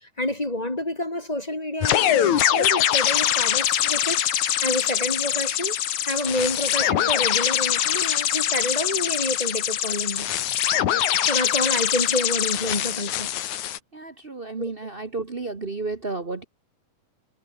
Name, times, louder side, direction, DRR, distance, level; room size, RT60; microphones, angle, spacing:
voice 1, 0.0-4.2 4.6-5.8 6.0-10.3 11.3-13.3 14.6-14.7, left 1 dB, 15° left, 1.9 m, -28 dB
sound 1, 1.8-13.8, left 11 dB, 65° left, 2.7 m, -23 dB
voice 2, 13.9-16.4, right 3 dB, 85° right, 0.5 m, -32 dB
omnidirectional pair, 3.8 m